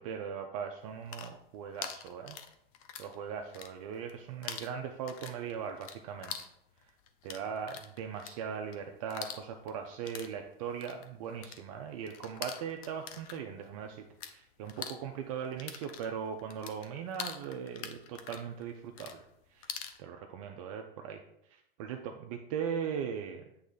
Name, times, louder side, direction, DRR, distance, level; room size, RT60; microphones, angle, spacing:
voice 1, 0.0-2.4 3.0-6.4 6.8-6.9 7.2-19.2 19.5-21.2 21.5-23.6, right 7 dB, 35° right, 4 dB, 0.4 m, -39 dB
sound 1, 0.9-3.2 3.4-4.1 4.4-14.3 14.6-20.0, left 8 dB, 35° left, 0.5 m, -44 dB
8.2 x 3.1 x 3.8 m, 0.77 s
hypercardioid pair, 145°, 30 cm